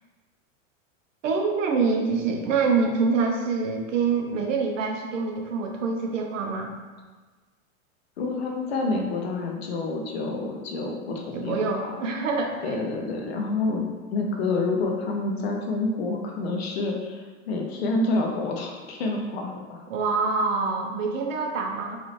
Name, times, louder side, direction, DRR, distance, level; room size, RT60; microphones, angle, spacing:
voice 1, 1.2-6.7 11.3-12.9 19.9-22.0, right 4 dB, 65° right, 2 dB, 0.7 m, -25 dB
voice 2, 8.2-11.9 12.6-13.8 14.1-19.8, left 3 dB, 50° left, 1 dB, 0.6 m, -28 dB
4.0 x 2.6 x 3.0 m, 1.3 s
supercardioid pair, 180°, 40 cm